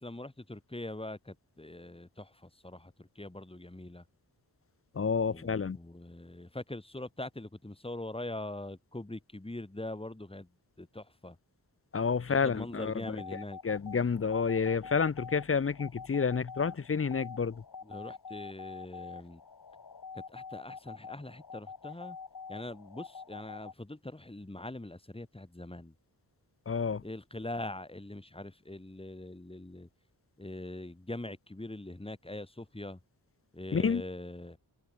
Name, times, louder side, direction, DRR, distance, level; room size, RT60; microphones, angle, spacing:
voice 1, 0.0-4.0 5.3-10.5 10.8-11.4 12.3-13.6 17.8-19.4 20.1-22.2 22.5-25.9 27.0-29.9 30.4-33.0 33.5-34.6, left 1 dB, 15° left, 4.7 m, -42 dB
voice 2, 4.9-5.8 11.9-13.0 13.6-17.6 26.7-27.0 33.7-34.0, left 5 dB, 35° left, 0.7 m, -29 dB
sound 1, 13.0-23.7, left 5 dB, 60° left, 6.5 m, -46 dB
wide cardioid pair, 135°, 39 cm